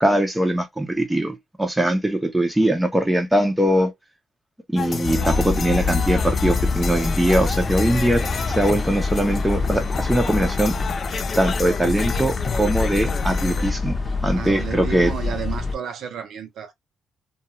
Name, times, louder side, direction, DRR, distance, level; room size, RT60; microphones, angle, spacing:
voice 1, 0.0-3.9 4.7-8.2 8.6-10.7 11.4-15.1, right 1 dB, 5° right, 0.6 m, -21 dB
sound 1, 4.8-13.7, left 5 dB, 45° left, 0.4 m, -31 dB
sound 2, 5.0-15.7, left 4 dB, 30° left, 0.8 m, -25 dB
voice 2, 14.4-16.7, right 8 dB, 70° right, 0.7 m, -32 dB
2.3 x 2.2 x 3.0 m
cardioid pair, 90°, 0 cm